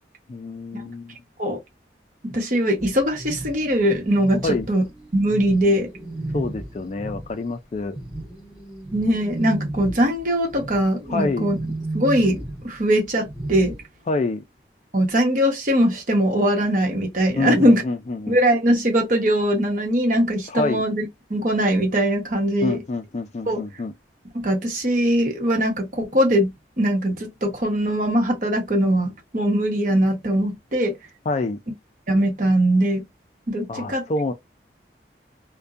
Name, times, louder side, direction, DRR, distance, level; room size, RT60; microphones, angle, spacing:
voice 1, 0.3-1.2 4.4-4.7 6.3-8.0 11.1-11.5 14.1-14.4 17.4-18.4 20.5-20.8 22.6-23.9 31.3-31.6 33.7-34.3, left 3 dB, 40° left, 0.4 m, -26 dB
voice 2, 2.2-4.9 5.1-5.9 8.9-11.6 11.9-13.8 14.9-17.8 18.3-21.0 21.3-22.8 23.5-23.6 24.3-31.0 32.1-33.0 33.5-34.0, equal, 45° right, 1.1 m, -21 dB
sound 1, 2.8-7.4 7.8-13.8, right 2 dB, 10° right, 1.4 m, -34 dB
2.6 x 2.2 x 2.4 m
head